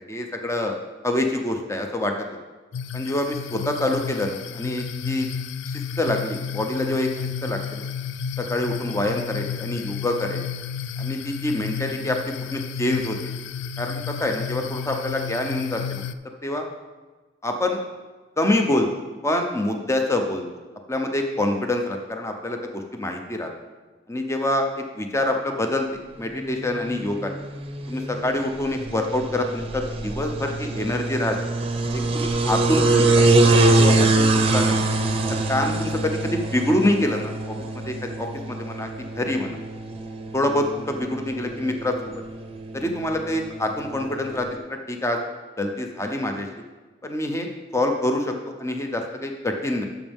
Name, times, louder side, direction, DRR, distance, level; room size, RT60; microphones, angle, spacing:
voice 1, 0.1-0.8 1.0-2.3 2.9-5.3 5.7-7.1 7.4-7.8 8.4-10.4 11.0-12.2 12.5-13.2 13.8-16.0 16.4-16.7 17.4-17.8 18.4-18.9 19.2-20.5 20.9-22.6 22.9-23.5 24.1-25.9 26.2-27.3 27.9-31.4 31.9-33.2 33.6-34.8 35.5-37.6 37.8-38.9 39.2-39.6 40.3-42.0 42.7-44.5 44.9-45.2 45.6-46.5 47.0-49.9, left 1 dB, 15° left, 4 dB, 0.7 m, -26 dB
sound 1, 2.7-16.1, left 7 dB, 65° left, 0.3 m, -32 dB
sound 2, 26.5-44.6, right 2 dB, 30° right, 0.7 m, -24 dB
12.5 x 6.1 x 3.6 m, 1.3 s
head